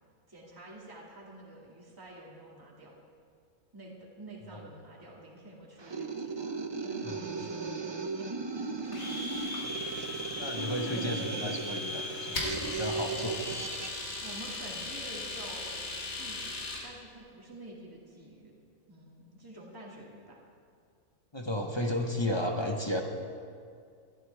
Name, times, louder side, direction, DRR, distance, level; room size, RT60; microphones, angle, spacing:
voice 1, 0.3-2.9 3.7-6.4 6.8-7.9 8.8-9.5 14.2-15.8 16.1-18.5 18.9-20.4, right 1 dB, 15° right, -4 dB, 2.2 m, -49 dB
sound 1, 5.8-14.0, right 4 dB, 35° right, 0.4 m, -37 dB
Domestic sounds home sounds, 8.9-16.9, left 2 dB, 70° left, 2.4 m, -38 dB
voice 2, 10.4-13.4 21.3-23.0, left 1 dB, 25° left, 3 dB, 0.8 m, -33 dB
20.0 x 13.0 x 3.4 m, 2.3 s
omnidirectional pair, 1.5 m